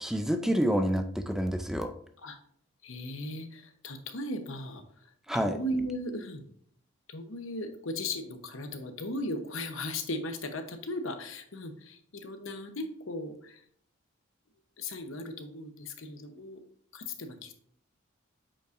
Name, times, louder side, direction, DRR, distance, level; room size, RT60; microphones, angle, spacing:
voice 1, 0.0-1.9 5.3-5.6, equal, ahead, 7 dB, 0.4 m, -28 dB
voice 2, 2.8-4.8 5.3-6.4 7.1-13.6 14.8-16.6 16.9-17.5, left 1 dB, 70° left, 7 dB, 1.0 m, -37 dB
8.5 x 5.5 x 2.6 m, 0.64 s
head